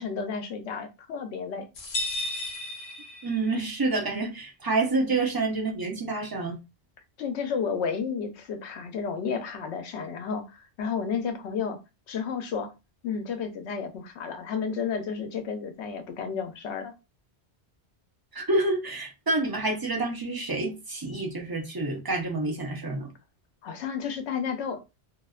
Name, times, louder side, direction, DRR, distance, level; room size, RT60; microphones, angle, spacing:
voice 1, 0.0-1.7 7.2-11.8 12.1-12.7 13.0-16.9 23.6-24.8, left 6 dB, 85° left, 0.9 m, -32 dB
sound 1, 1.8-3.7, left 1 dB, 50° left, 0.6 m, -33 dB
voice 2, 3.2-6.6 18.3-23.1, right 2 dB, 35° right, 0.4 m, -28 dB
2.6 x 2.1 x 2.3 m
omnidirectional pair, 1.1 m